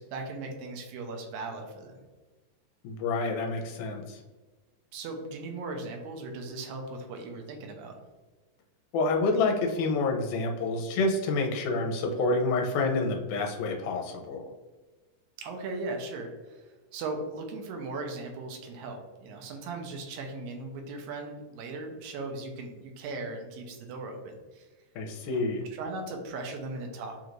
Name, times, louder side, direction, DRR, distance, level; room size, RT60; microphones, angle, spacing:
voice 1, 0.0-1.9 4.9-8.0 15.4-16.6 16.9-24.7 25.3-25.5 25.7-27.2, right 3 dB, 75° right, 2 dB, 1.9 m, -38 dB
voice 2, 2.8-4.2 8.9-14.4 25.0-25.6, left 3 dB, 80° left, 1 dB, 2.1 m, -28 dB
5.3 x 3.0 x 2.5 m, 1.3 s
omnidirectional pair, 3.6 m